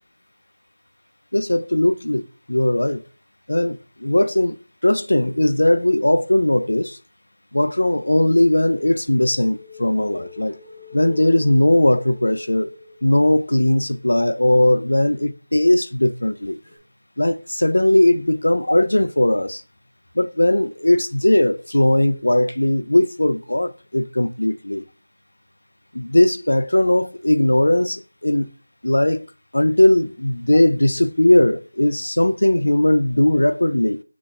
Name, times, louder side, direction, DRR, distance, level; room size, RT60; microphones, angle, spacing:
voice 1, 1.3-3.0 3.5-4.6 4.8-7.0 7.5-10.5 10.9-12.7 13.0-16.6 17.2-19.6 20.2-24.8 25.9-28.5 28.8-29.3 29.5-34.0, left 1 dB, 80° left, 0.5 m, -18 dB
sound 1, 8.6-13.4 16.6-16.8, left 3 dB, 20° left, 1.1 m, -41 dB
6.2 x 2.9 x 2.4 m
figure-of-eight pair, 180°, 0 cm